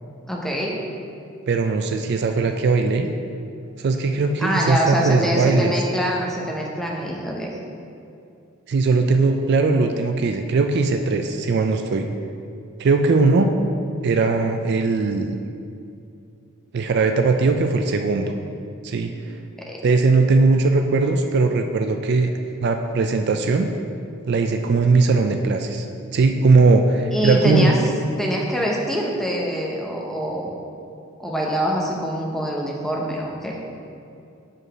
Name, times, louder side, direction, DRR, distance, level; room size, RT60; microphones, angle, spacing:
voice 1, 0.3-0.8 4.4-7.6 19.7-19.8 27.1-27.8 28.2-30.5 31.2-33.6, equal, ahead, -2 dB, 0.7 m, -24 dB
voice 2, 1.5-3.1 3.8-5.7 8.7-12.1 12.8-13.5 14.0-15.4 16.7-18.3 18.8-19.1 19.8-22.3 22.6-23.7 24.3-25.9 26.1-27.8, right 3 dB, 50° right, 6 dB, 0.3 m, -19 dB
5.1 x 4.8 x 6.0 m, 2.6 s
head